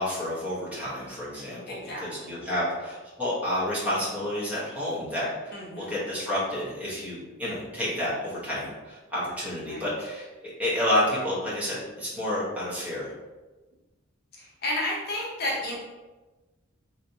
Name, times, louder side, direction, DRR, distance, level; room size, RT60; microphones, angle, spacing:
voice 1, 0.0-10.2 10.6-13.1, left 1 dB, 5° right, -9 dB, 1.0 m, -30 dB
voice 2, 1.3-2.3 5.5-5.9 9.7-9.8 14.3-15.8, left 1 dB, 50° left, -4 dB, 0.7 m, -32 dB
3.3 x 2.8 x 2.7 m, 1.2 s
head